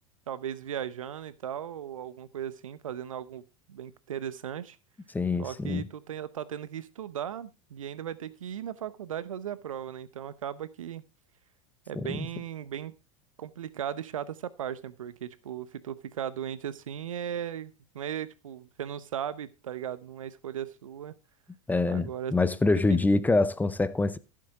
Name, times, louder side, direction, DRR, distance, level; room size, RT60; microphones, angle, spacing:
voice 1, 0.3-3.4 3.7-4.8 5.4-11.0 11.9-12.9 13.4-21.1 21.9-22.3, right 9 dB, 85° right, 0.8 m, -37 dB
voice 2, 5.1-5.9 12.1-12.2 21.7-24.2, left 3 dB, 10° left, 0.7 m, -25 dB
15.0 x 7.7 x 3.7 m
hypercardioid pair, 95°, 17 cm